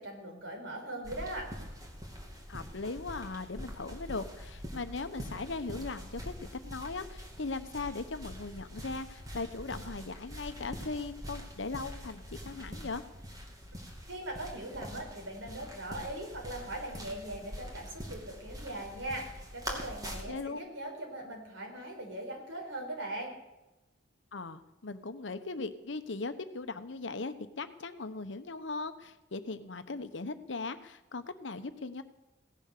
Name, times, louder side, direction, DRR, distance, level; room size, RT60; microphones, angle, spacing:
voice 1, 0.0-1.5 14.1-23.3, right 1 dB, 90° right, 1 dB, 4.5 m, -40 dB
sound 1, 1.0-20.2, equal, 20° right, 2.3 m, -44 dB
voice 2, 2.5-13.0 20.3-20.6 24.3-32.0, left 3 dB, 75° left, 11 dB, 1.0 m, -39 dB
17.0 x 10.5 x 6.7 m, 1.0 s
head